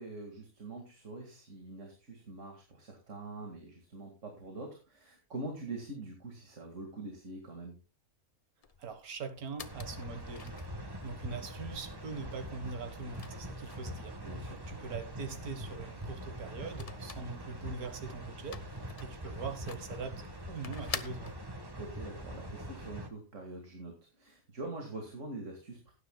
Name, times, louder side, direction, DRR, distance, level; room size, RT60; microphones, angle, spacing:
voice 1, 0.0-7.8 14.2-14.6 21.8-25.9, right 2 dB, 55° right, 2 dB, 2.3 m, -44 dB
sound 1, 8.6-21.3, left 6 dB, 50° left, 0.4 m, -49 dB
voice 2, 8.8-10.6 11.0-21.3, right 4 dB, 85° right, 8 dB, 1.8 m, -42 dB
sound 2, 9.6-23.1, equal, 15° right, 1.2 m, -43 dB
18.0 x 9.7 x 2.2 m, 0.30 s
omnidirectional pair, 1.5 m